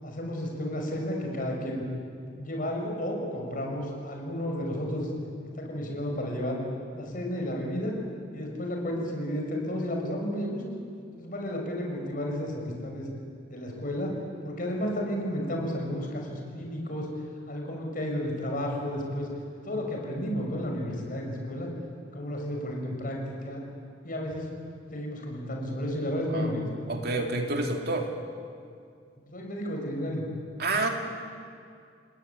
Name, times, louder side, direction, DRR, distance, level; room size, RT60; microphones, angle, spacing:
voice 1, 0.0-1.8 2.3-5.1 5.5-6.6 6.9-7.9 8.3-10.6 11.2-13.1 13.5-14.2 14.4-17.1 17.5-19.3 19.6-21.7 22.1-23.6 24.0-24.5 24.9-26.6 29.2-30.3, equal, 50° left, 1 dB, 6.1 m, -32 dB
voice 2, 26.9-28.1 30.6-30.9, right 2 dB, 55° right, 3 dB, 2.8 m, -28 dB
30.0 x 19.0 x 9.7 m, 2.3 s
head